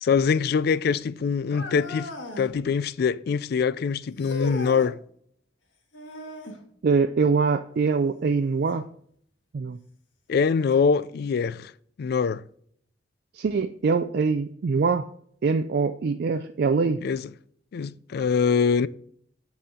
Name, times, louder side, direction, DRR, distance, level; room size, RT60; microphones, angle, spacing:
voice 1, 0.0-2.1 2.4-5.0 10.3-11.7 12.0-12.4 17.0-17.3 17.7-18.9, left 5 dB, 55° left, 0.3 m, -23 dB
sound 1, 1.5-2.5 4.2-4.9 5.9-6.6 8.7-8.8 9.6-9.7 10.7-10.8, left 2 dB, 80° left, 1.5 m, -37 dB
voice 2, 6.8-8.9 9.5-9.8 13.3-15.1 15.4-17.0, right 4 dB, 55° right, 0.4 m, -23 dB
12.0 x 4.2 x 3.7 m
head